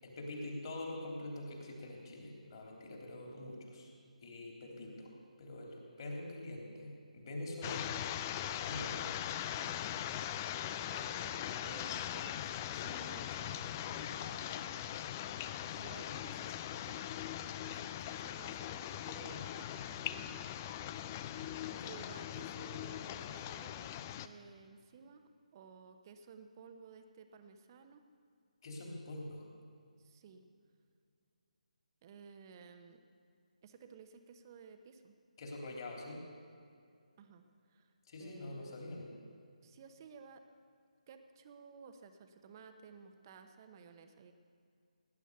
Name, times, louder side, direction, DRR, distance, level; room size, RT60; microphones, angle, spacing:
voice 1, 0.0-3.9 4.2-5.1 5.4-8.0 8.6-9.1 28.6-29.5 35.4-36.2 38.1-39.1, left 1 dB, 40° left, 0 dB, 3.4 m, -45 dB
sound 1, 7.6-24.3, left 11 dB, 20° left, 0.4 m, -40 dB
voice 2, 10.9-15.0 15.7-17.0 17.6-20.5 21.7-28.1 30.0-30.4 32.0-33.0 33.6-35.2 37.2-37.9 38.2-38.7 39.6-40.4 41.1-44.3, right 5 dB, 30° right, 7 dB, 1.1 m, -55 dB
18.0 x 9.9 x 6.8 m, 2.4 s
figure-of-eight pair, 150°, 4 cm